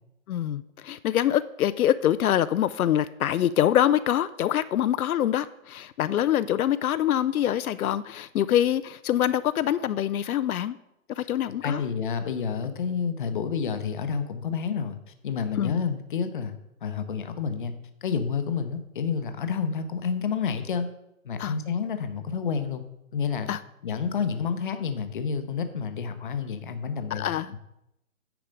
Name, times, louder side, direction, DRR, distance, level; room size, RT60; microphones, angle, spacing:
voice 1, 0.3-10.8 11.1-11.8 15.6-15.7 21.4-21.5 23.5-23.6 27.1-27.5, left 11 dB, 80° left, 14 dB, 0.5 m, -25 dB
voice 2, 11.6-15.0 15.2-16.5 16.8-17.7 18.0-20.9 21.2-22.8 23.1-23.5 23.8-27.3, left 6 dB, 35° left, 9 dB, 0.7 m, -29 dB
9.1 x 4.8 x 5.2 m, 0.84 s
hypercardioid pair, 165°, 43 cm